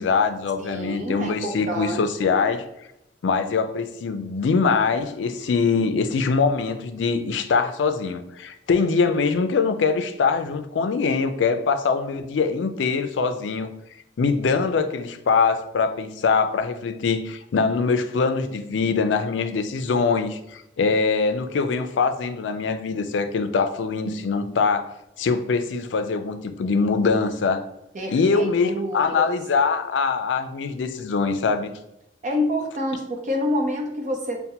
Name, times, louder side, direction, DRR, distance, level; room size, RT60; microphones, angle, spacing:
voice 1, 0.0-2.6 3.2-13.7 14.2-24.9 25.2-27.6 28.1-31.7, left 5 dB, 80° left, 9 dB, 0.4 m, -23 dB
voice 2, 0.6-2.4 27.9-29.4 32.2-34.4, left 1 dB, 45° right, 2 dB, 0.7 m, -28 dB
5.5 x 2.1 x 2.8 m, 0.86 s
head